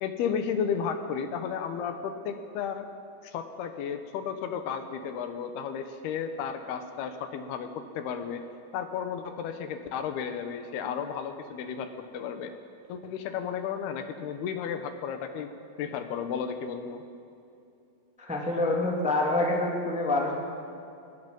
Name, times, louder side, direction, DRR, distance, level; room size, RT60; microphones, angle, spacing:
voice 1, 0.0-2.9 3.2-8.4 8.7-12.5 12.9-15.5 15.8-17.0, left 7 dB, 75° left, 7 dB, 3.0 m, -33 dB
voice 2, 18.2-20.3, left 2 dB, 5° right, -1 dB, 1.7 m, -26 dB
25.0 x 19.5 x 5.4 m, 2.6 s
omnidirectional pair, 4.6 m